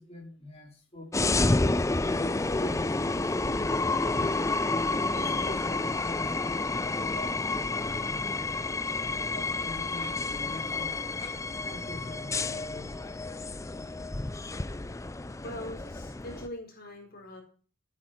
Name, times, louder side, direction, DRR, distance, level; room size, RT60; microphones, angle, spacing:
voice 1, 0.0-1.4 1.9-4.3 5.1-8.6 9.3-13.1, left 1 dB, 30° left, 4.4 m, -45 dB
sound 1, 1.1-16.5, left 3 dB, 15° left, 0.5 m, -30 dB
voice 2, 15.1-17.4, left 1 dB, 50° left, 4.4 m, -42 dB
16.0 x 8.8 x 4.4 m
head